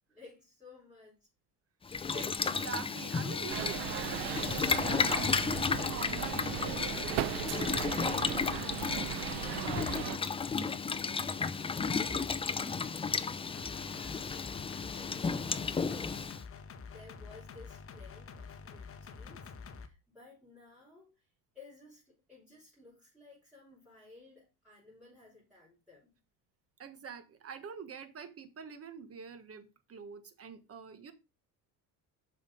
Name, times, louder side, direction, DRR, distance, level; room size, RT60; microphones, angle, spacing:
voice 1, 0.1-1.3 9.2-10.3 10.6-16.3 16.6-26.2, left 3 dB, ahead, 5.1 m, -57 dB
Boiling, 1.9-16.4, left 5 dB, 15° left, 0.5 m, -33 dB
voice 2, 2.1-4.3 4.8-7.3 8.1-8.8 26.8-31.1, right 6 dB, 35° right, 1.4 m, -46 dB
sound 1, 3.5-10.2, right 12 dB, 65° right, 0.9 m, -37 dB
sound 2, 13.5-19.9, left 5 dB, 35° left, 1.2 m, -48 dB
7.6 x 5.7 x 5.1 m
cardioid pair, 125°, 41 cm